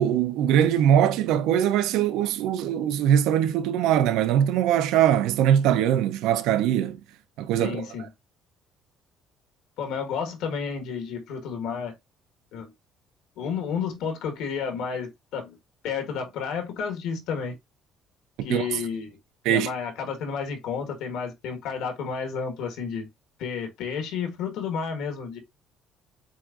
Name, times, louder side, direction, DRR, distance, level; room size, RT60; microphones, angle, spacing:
voice 1, 0.0-7.0 7.4-7.8 18.5-18.7 19.4-19.7, right 10 dB, 85° right, 0.6 m, -22 dB
voice 2, 7.6-8.1 9.8-11.9 12.5-12.7 13.4-15.6 15.8-17.5 18.4-19.2 19.5-23.1 23.4-25.4, left 6 dB, 75° left, 1.5 m, -31 dB
7.4 x 2.5 x 2.5 m
cardioid pair, 170°, 0 cm